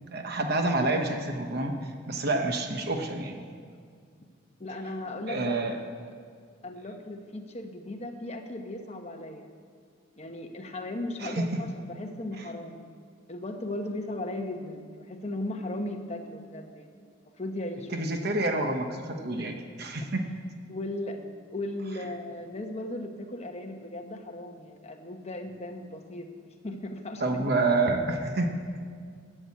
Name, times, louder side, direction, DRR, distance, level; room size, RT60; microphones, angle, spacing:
voice 1, 0.1-3.4 5.3-5.8 11.2-11.5 17.9-20.2 27.2-28.5, right 2 dB, 50° right, 4 dB, 1.0 m, -28 dB
voice 2, 4.6-5.9 6.6-9.5 10.2-12.8 13.3-17.0 17.4-17.9 19.4-19.5 20.7-21.2 21.5-27.2, left 1 dB, 30° left, 4 dB, 1.0 m, -37 dB
12.0 x 7.8 x 8.5 m, 2.1 s
head